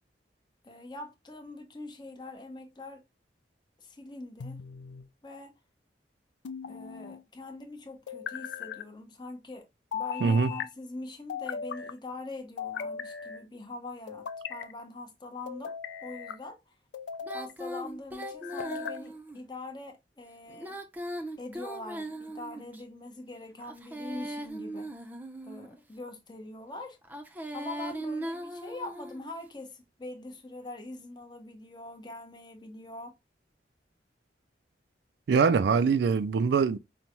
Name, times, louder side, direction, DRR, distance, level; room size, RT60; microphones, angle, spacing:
voice 1, 0.6-3.0 3.8-4.6 5.2-5.6 6.7-9.7 9.9-15.7 16.0-16.7 17.3-20.8 21.4-24.9 25.4-27.0 27.5-33.1, left 2 dB, 25° left, 0.7 m, -43 dB
sound 1, 4.4-5.1 6.4-7.2 8.1-8.8 9.9-10.7 11.3-11.9 12.6-13.4 14.1-14.7 15.5-16.4 16.9-17.5 18.2-19.0, left 7 dB, 85° left, 0.4 m, -38 dB
Female singing, 17.2-19.4 20.5-22.8 23.6-25.8 27.0-29.3, right 1 dB, 10° right, 0.5 m, -39 dB
voice 2, 35.3-36.8, right 5 dB, 65° right, 0.3 m, -23 dB
5.3 x 2.1 x 2.9 m
head